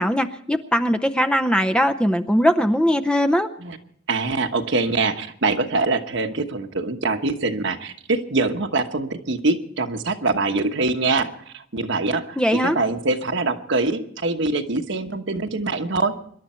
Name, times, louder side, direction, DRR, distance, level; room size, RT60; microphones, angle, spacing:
voice 1, 0.0-3.5 12.4-12.8, equal, 5° left, 10 dB, 0.6 m, -20 dB
voice 2, 4.1-16.1, right 3 dB, 65° right, 6 dB, 1.2 m, -24 dB
25.5 x 11.5 x 4.4 m, 0.66 s
head